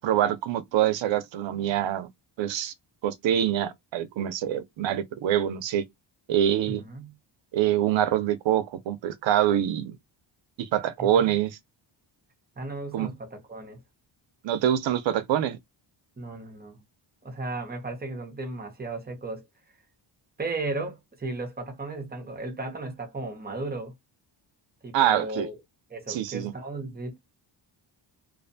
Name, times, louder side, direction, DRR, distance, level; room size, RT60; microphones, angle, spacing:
voice 1, 0.0-2.1 2.4-2.7 3.0-5.8 6.3-6.8 7.5-10.0 10.6-11.6 12.9-13.1 14.4-15.6 24.9-25.5 26.1-26.5, right 11 dB, 75° right, 0.6 m, -25 dB
voice 2, 6.7-7.1 11.0-11.4 12.6-13.8 16.2-16.8 17.2-19.5 20.4-23.9 24.8-25.6 25.9-27.2, right 2 dB, 20° right, 0.7 m, -35 dB
2.6 x 2.1 x 2.6 m
wide cardioid pair, 145°, 46 cm